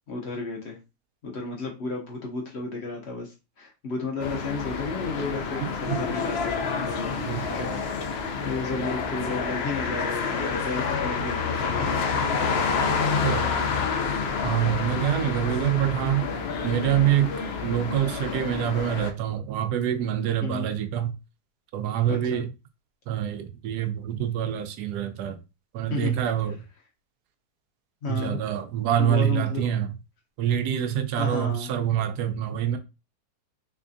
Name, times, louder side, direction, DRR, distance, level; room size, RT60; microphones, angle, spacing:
voice 1, 0.1-0.8 1.2-7.7 8.1-12.2 13.4-13.5 20.4-20.7 22.1-22.4 25.9-26.1 28.0-28.4 29.0-29.7 31.2-31.7, left 3 dB, 50° left, 1.0 m, -33 dB
sound 1, 4.2-19.1, left 5 dB, 75° left, 0.5 m, -28 dB
voice 2, 7.3-7.6 13.2-13.5 14.4-16.3 16.6-21.1 21.7-22.5 23.1-25.4 25.7-26.6 28.1-29.9 30.4-32.8, right 10 dB, 85° right, 1.2 m, -26 dB
3.5 x 3.3 x 2.5 m
omnidirectional pair, 1.7 m